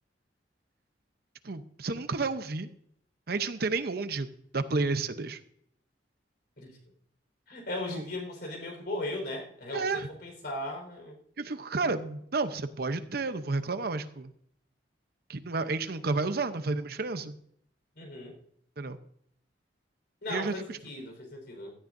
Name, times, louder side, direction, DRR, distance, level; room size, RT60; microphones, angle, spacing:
voice 1, 1.4-2.7 3.3-4.3 4.5-5.4 7.9-8.0 9.7-10.1 11.4-14.3 15.3-17.4 18.8-19.0 20.3-20.8, right 3 dB, 60° right, 10 dB, 0.8 m, -31 dB
voice 2, 7.5-11.1 18.0-18.4 20.2-21.7, left 1 dB, 65° left, 2 dB, 4.5 m, -37 dB
17.0 x 13.0 x 2.6 m, 0.68 s
head